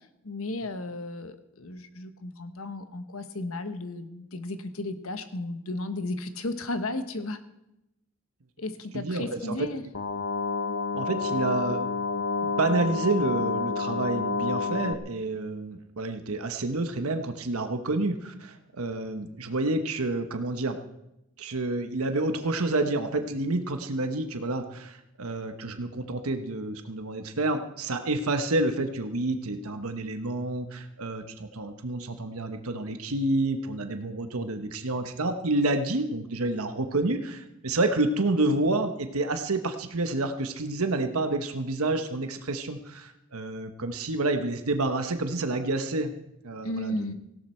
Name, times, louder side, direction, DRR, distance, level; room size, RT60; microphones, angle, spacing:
voice 1, 0.2-7.4 8.6-9.8 46.6-47.1, left 2 dB, 75° left, 9 dB, 1.2 m, -34 dB
voice 2, 8.9-9.7 10.9-12.0 12.4-20.8 21.4-46.1 46.4-47.1, right 2 dB, 85° right, 7 dB, 1.1 m, -29 dB
sound 1, 9.9-14.9, left 4 dB, 60° left, 0.9 m, -29 dB
18.0 x 16.5 x 4.4 m, 0.88 s
head